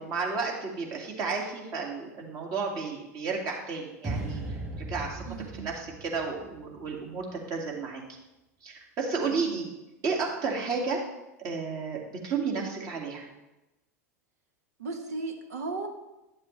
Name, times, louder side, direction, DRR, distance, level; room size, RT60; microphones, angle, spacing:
voice 1, 0.0-5.2 5.6-8.0 8.6-9.7 10.0-11.0 11.4-13.3, right 4 dB, 45° right, -1 dB, 2.3 m, -32 dB
sound 1, 4.0-7.2, right 2 dB, 20° right, 2.1 m, -37 dB
voice 2, 5.3-5.7 9.3-9.6 14.8-15.9, right 3 dB, 80° right, 4 dB, 1.3 m, -36 dB
11.0 x 7.2 x 3.3 m, 0.98 s
hypercardioid pair, 95°, 9 cm